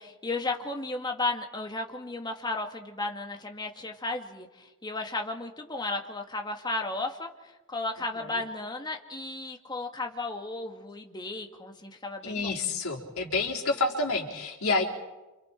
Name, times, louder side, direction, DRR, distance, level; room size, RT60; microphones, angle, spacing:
voice 1, 0.0-7.3 7.7-12.6, left 2 dB, 20° left, 3 dB, 2.0 m, -34 dB
voice 2, 12.2-14.8, left 3 dB, 70° left, -1 dB, 4.4 m, -28 dB
30.0 x 28.0 x 4.5 m, 1.1 s
head